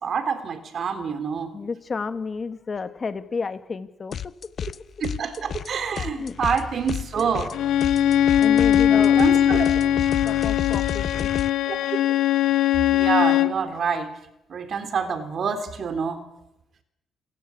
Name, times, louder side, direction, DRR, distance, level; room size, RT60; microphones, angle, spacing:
voice 1, 0.0-1.6 5.0-7.5 8.9-9.8 11.7-11.8 12.9-14.1 14.5-16.2, right 6 dB, 55° right, 8 dB, 3.8 m, -27 dB
voice 2, 1.5-4.3 4.6-4.7 6.0-6.4 8.4-9.2 10.2-11.3, left 4 dB, 35° left, 10 dB, 2.0 m, -31 dB
sound 1, 4.1-4.8 5.0-11.5, left 8 dB, 55° left, 0.8 m, -32 dB
Bowed string instrument, 7.5-13.6, left 11 dB, 80° left, 1.1 m, -20 dB
28.0 x 15.0 x 8.8 m, 0.83 s
cardioid pair, 90°, 0 cm